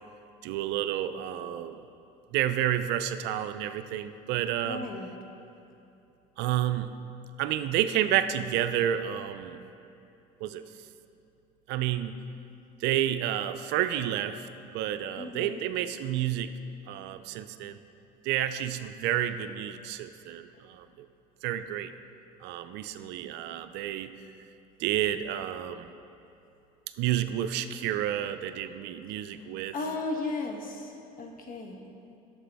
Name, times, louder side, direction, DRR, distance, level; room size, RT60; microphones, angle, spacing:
voice 1, 0.4-1.8 2.3-4.9 6.4-6.9 7.4-9.6 10.4-10.6 11.7-12.2 12.8-14.5 14.7-16.5 16.9-17.8 18.2-21.1 21.4-21.9 22.4-24.1 24.8-25.9 27.0-29.7, right 11 dB, 70° right, 11 dB, 0.4 m, -30 dB
voice 2, 4.6-5.1 15.2-15.6 29.7-31.8, left 3 dB, 50° left, 3 dB, 1.1 m, -35 dB
9.4 x 6.7 x 3.4 m, 2.8 s
supercardioid pair, 80°, 18 cm